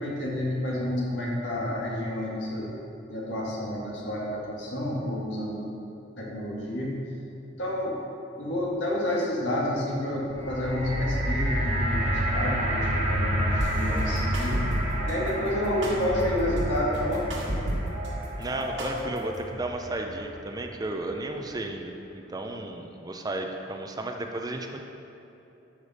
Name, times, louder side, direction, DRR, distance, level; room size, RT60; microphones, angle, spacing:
voice 1, 0.0-2.8 3.1-5.7 6.2-6.9 7.6-8.0 8.4-14.7 15.1-17.3, left 1 dB, 75° left, -4 dB, 1.8 m, -29 dB
sound 1, 10.2-20.5 21.2-21.3, equal, 35° right, 1.3 m, -30 dB
sound 2, 13.6-15.1 15.8-18.1 18.4-19.4, right 1 dB, 85° right, 1.7 m, -31 dB
voice 2, 18.4-24.8, right 2 dB, 20° right, 3 dB, 0.5 m, -34 dB
12.0 x 4.9 x 4.2 m, 3.0 s
head